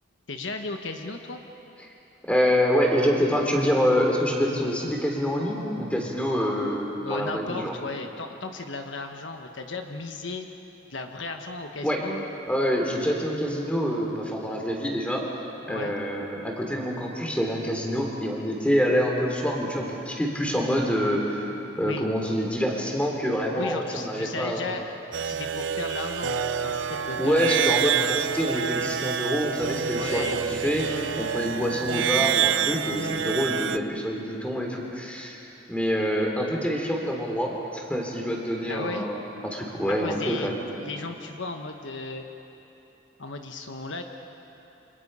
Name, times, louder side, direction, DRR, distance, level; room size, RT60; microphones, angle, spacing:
voice 1, 0.3-1.4 7.0-10.5 10.9-12.2 15.7-15.9 21.8-22.1 23.6-24.9 25.2-27.4 29.9-30.6 38.7-39.1 40.0-40.5 40.8-42.2 43.2-44.0, left 3 dB, 70° left, 5 dB, 1.3 m, -35 dB
voice 2, 2.3-7.7 11.8-12.0 12.5-15.2 15.7-24.6 27.2-30.8 31.2-35.4 35.7-39.2 39.4-40.6, equal, 5° left, 0 dB, 3.3 m, -26 dB
sound 1, 25.1-33.8, right 8 dB, 70° right, 0.6 m, -27 dB
28.5 x 26.0 x 5.6 m, 3.0 s
head